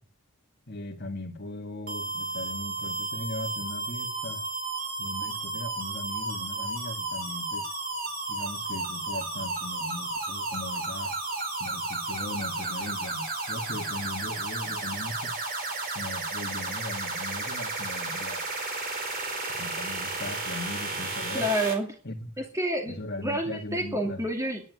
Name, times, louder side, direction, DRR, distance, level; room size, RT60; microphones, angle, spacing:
voice 1, 0.7-4.4 4.9-7.7 8.3-11.2 11.6-15.3 15.9-18.4 19.5-21.5 22.0-22.4 22.9-24.2, left 1 dB, 45° left, 1.9 m, -39 dB
sound 1, 1.9-21.7, right 3 dB, 40° right, 4.4 m, -33 dB
voice 2, 21.3-21.9 22.5-23.0 23.2-24.6, right 1 dB, 15° right, 2.6 m, -28 dB
11.0 x 10.5 x 9.3 m
head